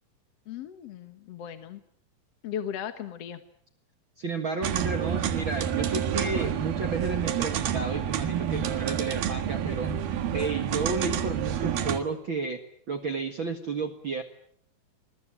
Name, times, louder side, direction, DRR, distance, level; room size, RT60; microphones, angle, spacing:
voice 1, 0.5-1.8 2.4-3.4, left 9 dB, 60° left, 9 dB, 1.9 m, -37 dB
voice 2, 4.2-12.6 12.9-14.2, right 4 dB, 45° right, 6 dB, 1.8 m, -32 dB
sound 1, 4.6-12.0, right 9 dB, 85° right, 3.4 m, -29 dB
27.5 x 21.5 x 9.0 m, 0.67 s
omnidirectional pair, 4.2 m